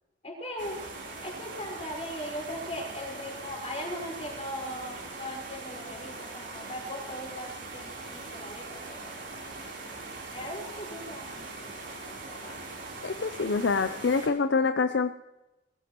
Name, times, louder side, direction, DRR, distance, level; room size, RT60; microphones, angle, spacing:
voice 1, 0.2-0.8 1.2-9.1 10.3-11.7 12.3-12.8, equal, 35° left, -1 dB, 4.8 m, -39 dB
sound 1, 0.6-14.3, right 3 dB, 75° right, 3.6 m, -41 dB
voice 2, 13.0-15.1, left 4 dB, 70° left, 9 dB, 0.5 m, -26 dB
20.5 x 14.5 x 3.0 m, 0.95 s
head